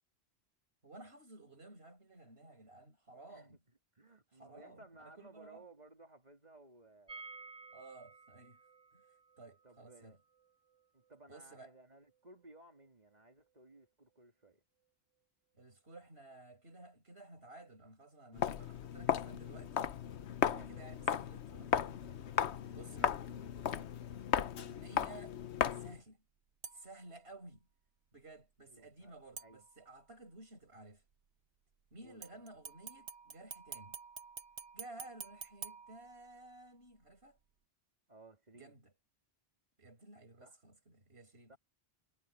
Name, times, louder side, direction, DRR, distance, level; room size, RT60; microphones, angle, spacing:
voice 1, 0.8-3.6 4.3-5.7 7.7-8.6 8.9-10.2 11.3-11.7 15.5-20.0 20.5-22.0 22.7-23.2 24.5-25.4 25.7-26.2 26.7-27.7 28.1-31.0 31.9-34.0 34.7-37.4 38.5-38.9 39.8-41.6, right 2 dB, 65° right, 5.8 m, -55 dB
voice 2, 3.9-7.2 9.6-10.2 10.9-14.6 20.4-20.9 28.6-29.1 29.4-29.6 32.0-32.5 38.1-38.7 40.4-40.6 41.5-41.6, right 2 dB, 40° right, 3.1 m, -59 dB
sound 1, 7.1-12.9 13.1-13.2 13.5-13.6, right 3 dB, 20° right, 1.7 m, -56 dB
Walk footsteps, 18.3-26.0, left 9 dB, 80° left, 1.1 m, -36 dB
sound 2, 26.6-27.1 29.4-30.1 32.2-36.6 37.0-37.1, right 6 dB, 85° right, 1.4 m, -49 dB
omnidirectional pair, 1.1 m